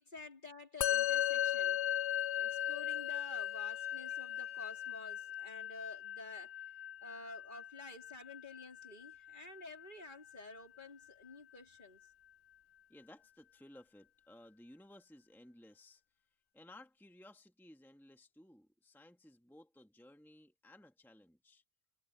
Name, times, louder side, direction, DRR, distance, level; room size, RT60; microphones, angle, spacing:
voice 1, 0.0-1.8 2.4-6.6 7.0-12.0, left 3 dB, 50° left, 3.9 m, -51 dB
Musical instrument, 0.8-10.3, left 12 dB, 85° left, 0.9 m, -37 dB
Chime, 2.0-6.5, right 2 dB, 80° right, 7.7 m, -74 dB
voice 2, 12.9-16.0 16.5-21.6, left 1 dB, ahead, 1.5 m, -58 dB
omnidirectional pair, 1.1 m